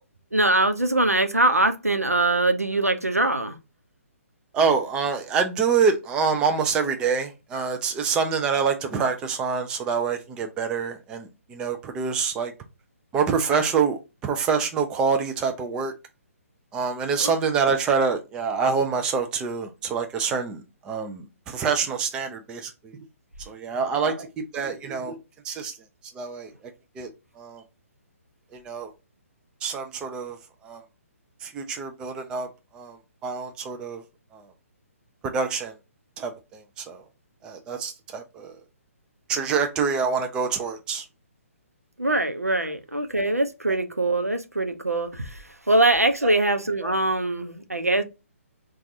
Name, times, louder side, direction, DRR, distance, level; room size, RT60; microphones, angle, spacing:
voice 1, 0.3-3.6 17.2-17.3 24.0-24.1 42.0-45.4 45.7-48.0, right 2 dB, 85° right, 0.6 m, -22 dB
voice 2, 4.5-12.5 13.1-15.9 16.7-23.0 23.4-25.2 25.4-25.8 26.1-27.1 27.4-27.6 28.5-28.9 29.6-30.8 31.4-34.0 34.3-34.5 35.2-35.7 36.2-37.0 37.4-38.6 39.3-41.1 42.6-42.7 43.7-43.8 46.2-46.3 46.8-47.0, right 5 dB, 10° right, 0.3 m, -26 dB
4.4 x 2.3 x 2.6 m
figure-of-eight pair, 135°, 8 cm